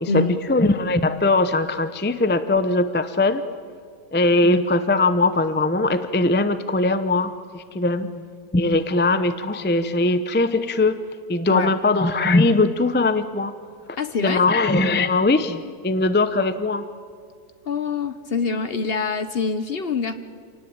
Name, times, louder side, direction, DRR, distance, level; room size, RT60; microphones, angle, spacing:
voice 1, 0.0-3.4 4.1-8.3 8.5-11.0 11.3-13.5 14.2-16.9, left 2 dB, 15° left, 11 dB, 0.5 m, -20 dB
voice 2, 14.0-14.4 17.7-20.1, left 5 dB, 45° left, 11 dB, 0.9 m, -25 dB
27.0 x 18.0 x 8.8 m, 2.1 s
omnidirectional pair, 1.6 m